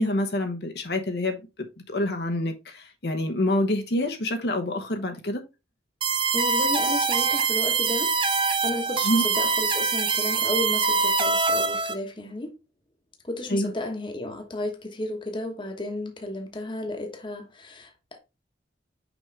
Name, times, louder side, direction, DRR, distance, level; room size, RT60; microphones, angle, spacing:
voice 1, 0.0-5.4 9.0-9.3 13.5-13.7, left 1 dB, 65° left, 0.9 m, -27 dB
sound 1, 6.0-11.9, right 4 dB, 30° right, 0.7 m, -24 dB
voice 2, 6.3-12.5 13.2-18.2, left 2 dB, 25° left, 1.1 m, -33 dB
6.0 x 5.3 x 3.3 m
head